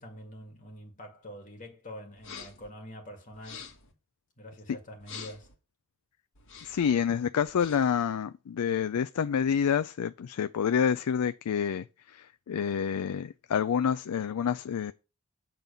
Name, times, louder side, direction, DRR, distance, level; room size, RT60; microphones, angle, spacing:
voice 1, 0.0-3.7 4.4-5.5, equal, 35° left, 2.2 m, -45 dB
sound 1, 2.2-2.7 3.3-3.9 5.0-5.5 6.4-6.9 7.4-8.0, left 6 dB, 60° left, 1.9 m, -46 dB
voice 2, 6.6-14.9, left 7 dB, 85° left, 0.4 m, -28 dB
8.9 x 4.0 x 6.8 m
head